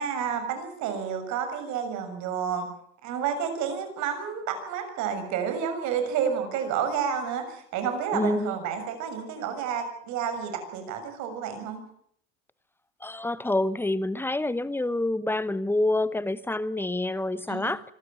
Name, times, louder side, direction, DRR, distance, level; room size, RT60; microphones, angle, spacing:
voice 1, 0.0-2.7 3.0-11.8 17.5-17.7, right 7 dB, 55° right, 6.6 m, -30 dB
voice 2, 8.1-8.6 13.0-17.8, left 2 dB, 5° left, 1.0 m, -27 dB
26.0 x 12.5 x 9.1 m
supercardioid pair, 110°, 35 cm